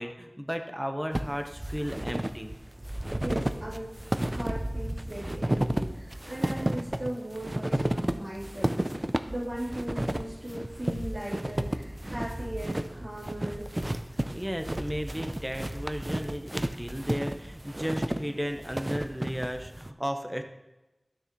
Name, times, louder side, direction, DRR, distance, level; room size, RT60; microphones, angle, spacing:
voice 1, 0.0-2.5 14.3-20.4, equal, 10° right, 5 dB, 1.0 m, -34 dB
sound 1, 1.1-19.9, right 1 dB, 30° right, 0.5 m, -32 dB
voice 2, 3.2-3.9 4.2-9.0 9.3-13.6, right 1 dB, 80° right, -13 dB, 3.5 m, -38 dB
12.5 x 6.4 x 3.1 m, 1.0 s
wide cardioid pair, 45°, 0 cm